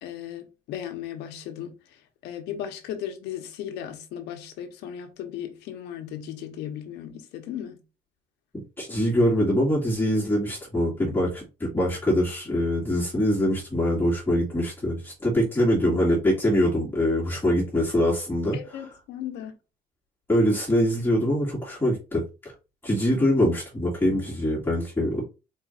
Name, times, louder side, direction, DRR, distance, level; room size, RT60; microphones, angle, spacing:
voice 1, 0.0-7.8 18.5-19.5, left 10 dB, 90° left, 1.1 m, -36 dB
voice 2, 8.8-18.6 20.3-22.2 22.8-25.2, equal, 10° left, 2.4 m, -23 dB
4.5 x 4.1 x 2.6 m
cardioid pair, 110°, 17 cm